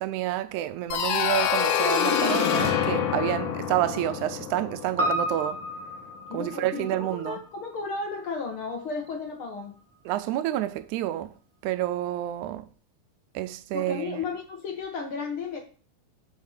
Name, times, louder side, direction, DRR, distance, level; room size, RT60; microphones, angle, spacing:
voice 1, 0.0-5.6 6.3-7.4 10.1-11.3 11.6-12.7 13.4-14.2, right 13 dB, 85° right, 2.0 m, -29 dB
sound 1, 0.9-5.6, left 8 dB, 85° left, 2.5 m, -26 dB
Piano, 5.0-9.5 9.8-9.9, equal, 5° right, 1.3 m, -33 dB
voice 2, 6.3-9.7 13.7-15.6, left 4 dB, 55° left, 1.9 m, -34 dB
6.8 x 5.6 x 6.5 m
omnidirectional pair, 3.5 m